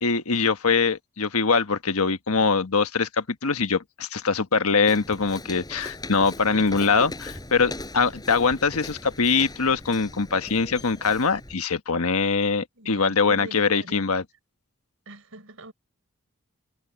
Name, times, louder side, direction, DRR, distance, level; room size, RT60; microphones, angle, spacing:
voice 1, 0.0-14.2, left 4 dB, 75° left, 1.3 m, -23 dB
Walk footsteps, 4.9-11.6, left 2 dB, 20° left, 6.3 m, -40 dB
voice 2, 6.5-7.1 12.8-14.0 15.1-15.7, right 2 dB, 65° right, 5.8 m, -43 dB
head